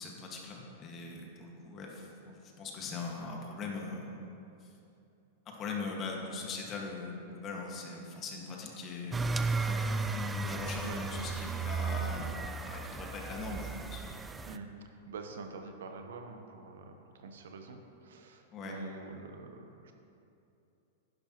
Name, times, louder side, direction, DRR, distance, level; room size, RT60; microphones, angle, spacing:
voice 1, 0.0-4.2 4.6-4.7 5.5-9.2 9.6-14.0 18.5-18.8, left 3 dB, 30° left, 0 dB, 1.8 m, -41 dB
sound 1, 9.1-14.6, right 4 dB, 15° right, 0.4 m, -34 dB
voice 2, 15.1-19.9, right 4 dB, 80° right, 4 dB, 1.0 m, -46 dB
11.0 x 11.0 x 3.1 m, 2.7 s
hypercardioid pair, 115°, 0 cm